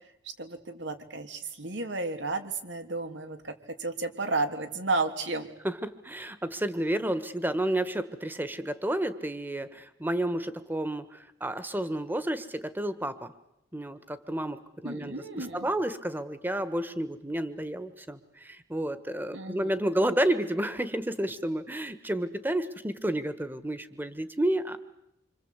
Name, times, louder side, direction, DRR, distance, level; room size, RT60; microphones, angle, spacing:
voice 1, 0.2-3.5 3.8-5.5 14.8-15.7 19.3-19.7, right 3 dB, 85° right, 7 dB, 3.0 m, -32 dB
voice 2, 5.6-13.3 13.7-24.8, right 1 dB, 10° right, 12 dB, 1.6 m, -31 dB
27.0 x 26.5 x 8.3 m, 0.83 s
head